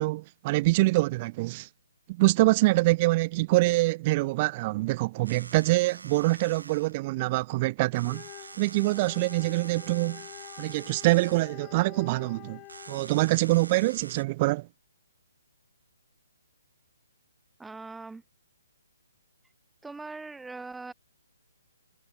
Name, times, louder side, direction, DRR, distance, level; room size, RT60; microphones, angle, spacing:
voice 1, 0.0-1.7 2.1-8.2 8.6-10.3 10.6-12.6 12.9-14.7, right 21 dB, 30° right, 0.3 m, -25 dB
sound 1, 5.3-14.2, right 4 dB, 65° right, 0.7 m, -46 dB
Wind instrument woodwind instrument, 8.0-13.2, left 24 dB, 20° left, 0.8 m, -48 dB
voice 2, 17.6-18.2 19.8-20.9, right 3 dB, 5° right, 1.7 m, -41 dB
figure-of-eight pair, 135°, 0 cm